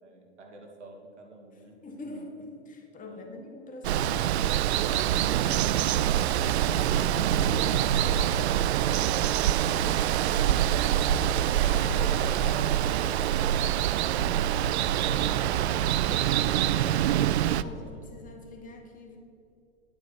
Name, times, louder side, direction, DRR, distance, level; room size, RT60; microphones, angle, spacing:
voice 1, 0.0-1.8 2.0-2.3 3.1-3.3 7.3-8.5 8.8-9.3 12.8-13.4, right 3 dB, 90° right, 1 dB, 2.3 m, -47 dB
voice 2, 1.5-4.4 5.4-5.6 6.5-6.6 8.5-8.9 9.7-10.9 11.5-12.0 12.8-13.2 14.9-19.2, left 2 dB, 25° left, 3 dB, 2.0 m, -45 dB
Water, 3.8-17.6, right 11 dB, 70° right, 0.5 m, -25 dB
sound 1, 10.1-13.5, equal, 80° left, 2.7 m, -44 dB
10.5 x 9.0 x 5.6 m, 2.6 s
hypercardioid pair, 110°, 34 cm